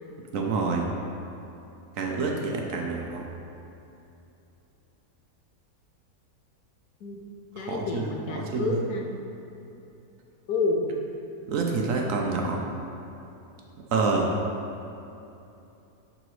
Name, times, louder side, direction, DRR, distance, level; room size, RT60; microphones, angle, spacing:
voice 1, 0.3-0.9 2.0-3.3 7.6-8.8 11.5-12.6 13.9-14.3, right 4 dB, 65° right, 0 dB, 1.0 m, -27 dB
voice 2, 7.5-9.0 10.5-10.9, left 3 dB, 80° left, 2 dB, 1.2 m, -29 dB
11.0 x 3.9 x 3.1 m, 2.8 s
omnidirectional pair, 1.7 m